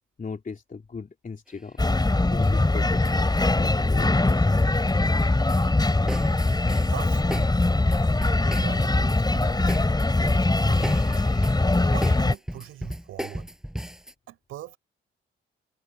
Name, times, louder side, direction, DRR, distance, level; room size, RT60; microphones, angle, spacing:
voice 1, 0.2-1.8 2.3-3.3 3.6-4.5, left 5 dB, 40° left, 3.3 m, -37 dB
sound 1, 1.5-2.1 2.4-4.9 5.2-14.1, equal, 5° right, 7.7 m, -36 dB
sound 2, 1.8-12.3, left 2 dB, 20° left, 4.3 m, -22 dB
voice 2, 6.8-7.5 8.4-9.7 10.2-11.1 11.9-13.5 14.3-14.8, right 13 dB, 90° right, 5.4 m, -41 dB
supercardioid pair, 60°, 21 cm